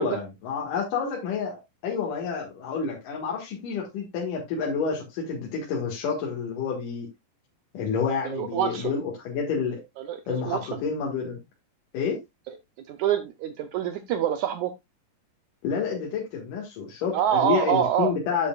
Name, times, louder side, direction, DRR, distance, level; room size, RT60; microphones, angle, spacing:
voice 1, 0.0-7.1 7.7-9.8 10.3-11.4 11.9-12.2 15.6-18.5, left 6 dB, 75° left, 3.3 m, -29 dB
voice 2, 8.3-8.9 10.0-10.2 10.5-10.6 12.9-14.7 17.1-18.1, right 10 dB, 75° right, 1.8 m, -25 dB
9.8 x 7.9 x 2.3 m
omnidirectional pair, 3.9 m